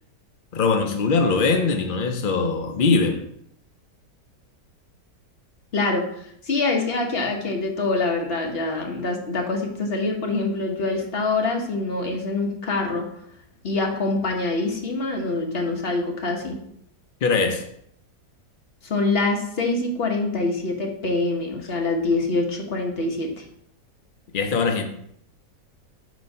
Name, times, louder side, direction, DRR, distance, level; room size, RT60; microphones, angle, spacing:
voice 1, 0.5-3.2 17.2-17.7 24.3-24.8, left 4 dB, 85° left, 0.4 m, -21 dB
voice 2, 5.7-13.1 13.6-16.6 18.8-23.4, left 3 dB, 40° left, 1.1 m, -25 dB
7.5 x 3.1 x 5.4 m
omnidirectional pair, 1.9 m